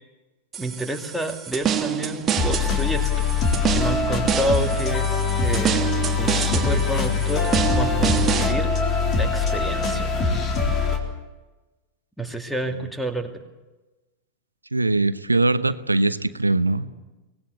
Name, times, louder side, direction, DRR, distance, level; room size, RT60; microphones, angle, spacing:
sound 1, 0.5-8.5, right 8 dB, 25° right, 1.8 m, -27 dB
voice 1, 0.6-3.3 3.7-5.9 6.2-8.7 9.2-10.2 12.2-13.3, right 1 dB, ahead, 2 dB, 2.6 m, -29 dB
sound 2, 2.4-11.0, left 4 dB, 30° left, 3.8 m, -23 dB
voice 2, 14.7-16.9, right 2 dB, 80° right, 14 dB, 0.9 m, -21 dB
24.5 x 19.0 x 8.3 m, 1.1 s
figure-of-eight pair, 90°, 0 cm